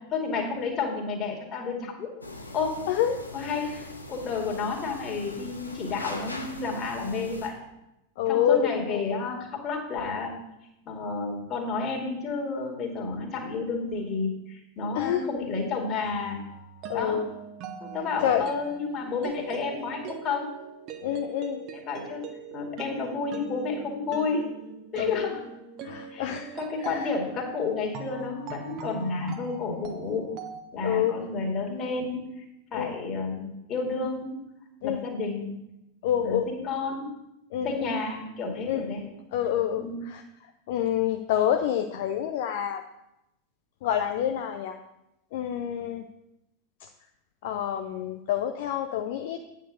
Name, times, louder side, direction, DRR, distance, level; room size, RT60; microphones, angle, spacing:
voice 1, 0.1-2.1 2.5-2.8 3.3-3.7 4.1-7.5 8.3-10.4 10.9-16.4 16.9-17.2 17.8-20.5 21.7-22.3 22.5-24.5 24.9-25.4 26.1-30.3 30.7-32.2 32.7-34.4 34.8-35.5 36.2-37.1 37.6-39.1 39.8-40.0, left 4 dB, 30° left, 0 dB, 2.4 m, -31 dB
sound 1, 2.2-7.5, left 2 dB, 85° left, 1.2 m, -41 dB
voice 2, 2.9-3.2 8.2-9.2 14.9-15.3 16.9-17.3 18.2-18.4 21.0-21.6 25.0-25.3 25.8-26.5 26.8-27.1 30.8-31.1 32.7-32.9 34.8-35.0 36.0-36.5 37.5-37.9 38.7-38.8 39.3-40.2 40.7-42.8 43.8-44.8 45.3-46.0 46.8-46.9 47.4-49.4, left 10 dB, 50° left, 5 dB, 0.6 m, -27 dB
sound 2, 16.0-30.6, right 6 dB, 40° right, 1.0 m, -42 dB
9.1 x 4.6 x 6.4 m, 0.89 s
figure-of-eight pair, 90°, 0 cm